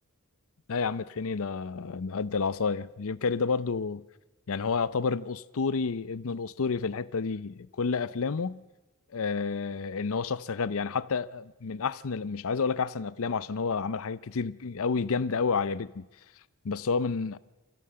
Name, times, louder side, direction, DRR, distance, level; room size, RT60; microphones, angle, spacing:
voice 1, 0.7-4.0 4.5-8.6 9.1-16.0 16.6-17.4, left 5 dB, 65° left, 0.6 m, -30 dB
25.5 x 15.0 x 7.7 m
head